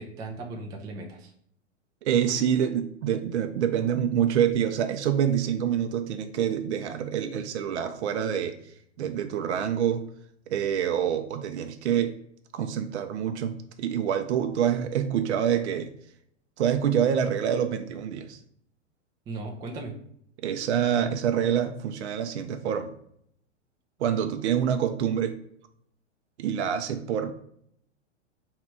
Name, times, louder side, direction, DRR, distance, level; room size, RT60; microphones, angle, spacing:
voice 1, 0.0-1.3 19.3-19.9, right 2 dB, 10° right, 1 dB, 0.4 m, -37 dB
voice 2, 2.0-8.6 9.0-10.0 10.5-12.1 12.5-15.9 16.6-18.4 20.4-22.9 24.0-25.3 26.4-27.3, right 9 dB, 65° right, 7 dB, 0.6 m, -26 dB
3.2 x 2.9 x 4.6 m, 0.70 s
figure-of-eight pair, 105°, 37 cm